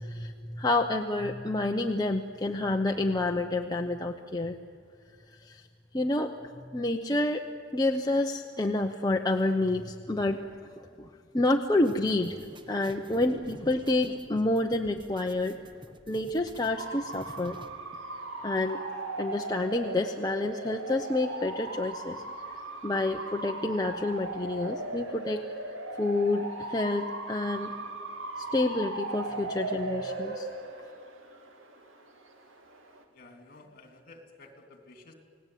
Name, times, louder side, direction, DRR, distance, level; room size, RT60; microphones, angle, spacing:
voice 1, 0.0-4.6 5.3-5.7 5.9-10.4 10.8-11.1 11.3-12.4 12.7-15.6 16.1-17.6 18.4-18.8 19.2-22.2 22.8-25.5 26.0-27.7 28.4-30.5, left 2 dB, 20° left, 3 dB, 0.8 m, -29 dB
sound 1, 11.8-17.7, right 1 dB, 25° right, 1.5 m, -50 dB
Bark / Motor vehicle (road) / Siren, 16.8-33.0, right 2 dB, 85° right, 2.5 m, -38 dB
voice 2, 33.1-35.1, left 2 dB, 45° left, 5 dB, 3.1 m, -52 dB
29.0 x 18.0 x 9.3 m, 2.2 s
head